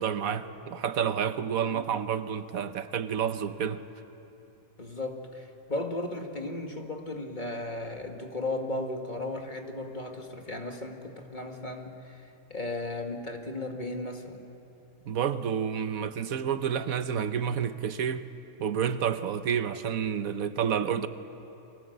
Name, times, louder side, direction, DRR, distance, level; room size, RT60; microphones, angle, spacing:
voice 1, 0.0-3.8 15.1-18.2 18.6-21.1, right 8 dB, 80° right, 11 dB, 1.3 m, -29 dB
voice 2, 4.8-14.4, left 2 dB, 35° left, 3 dB, 2.2 m, -35 dB
30.0 x 24.0 x 8.0 m, 2.9 s
omnidirectional pair, 1.5 m